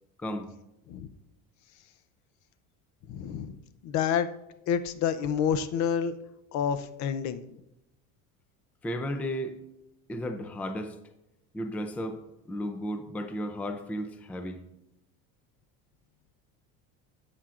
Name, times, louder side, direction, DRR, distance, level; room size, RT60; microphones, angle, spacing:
voice 1, 0.2-0.5 8.8-9.6 10.1-11.0 11.5-12.2 12.5-14.6, equal, 5° left, 8 dB, 0.4 m, -34 dB
voice 2, 3.1-3.6 3.8-4.3 4.7-6.1 6.5-7.4, left 8 dB, 55° left, 12 dB, 0.7 m, -28 dB
13.0 x 8.3 x 2.5 m, 0.88 s
cardioid pair, 140°, 33 cm